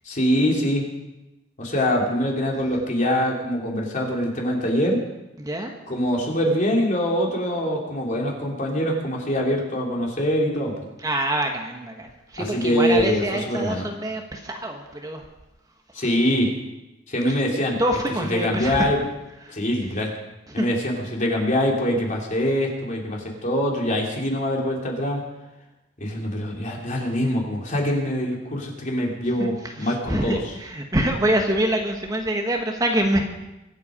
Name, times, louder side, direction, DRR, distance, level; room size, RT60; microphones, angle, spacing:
voice 1, 0.0-0.8 1.6-5.0 5.9-10.7 12.4-13.8 15.9-16.5 17.1-17.8 18.3-19.0 19.5-20.1 20.5-25.2 26.0-30.4, equal, 45° left, -1 dB, 3.3 m, -24 dB
voice 2, 5.4-5.8 11.0-15.3 17.3-17.4 17.8-18.9 19.4-19.6 20.5-20.7 29.2-33.3, right 1 dB, 20° right, 3 dB, 1.4 m, -26 dB
24.0 x 8.3 x 5.2 m, 0.98 s
head